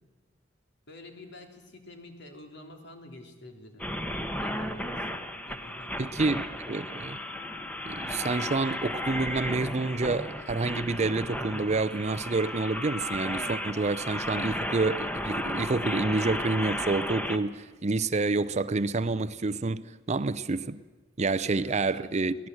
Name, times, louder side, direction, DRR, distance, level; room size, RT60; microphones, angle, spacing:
voice 1, 0.9-3.9 4.4-5.1 5.5-6.2 21.4-22.1, left 1 dB, 65° left, 3.5 m, -48 dB
sound 1, 3.8-17.4, left 1 dB, 10° left, 1.2 m, -34 dB
voice 2, 6.0-7.2 7.9-20.8 21.2-22.4, right 3 dB, 35° right, 0.6 m, -28 dB
23.5 x 18.0 x 7.9 m
head